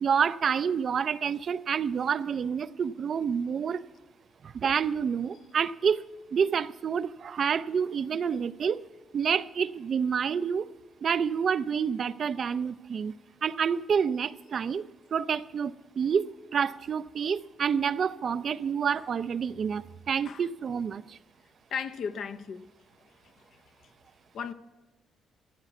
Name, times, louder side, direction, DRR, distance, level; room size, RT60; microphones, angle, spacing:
voice 1, 0.0-3.8 4.4-6.0 6.3-8.8 9.1-10.7 11.0-14.9 15.1-21.2, right 7 dB, 50° right, 0.4 m, -28 dB
voice 2, 21.7-22.7 23.5-23.6 24.3-24.5, left 6 dB, 65° left, 0.6 m, -35 dB
15.0 x 8.1 x 5.9 m
cardioid pair, 90°, 0 cm